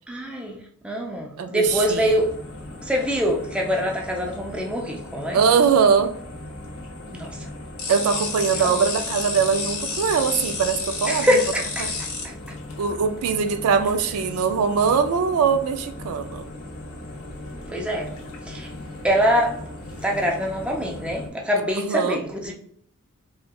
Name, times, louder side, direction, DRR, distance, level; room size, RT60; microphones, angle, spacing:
voice 1, 0.1-2.3 2.8-5.4 7.1-7.5 8.5-8.8 11.1-11.9 12.2-12.6 17.7-18.1 18.5-18.7 19.0-19.7 20.0-22.5, equal, 5° right, 0.5 m, -24 dB
voice 2, 1.4-2.2 5.3-6.1 7.9-11.3 12.8-16.5 21.7-22.2, right 6 dB, 75° right, 0.3 m, -21 dB
sound 1, 1.6-21.3, left 1 dB, 65° left, 0.9 m, -38 dB
sound 2, 7.8-12.2, left 4 dB, 80° left, 1.2 m, -30 dB
4.3 x 2.2 x 2.3 m
head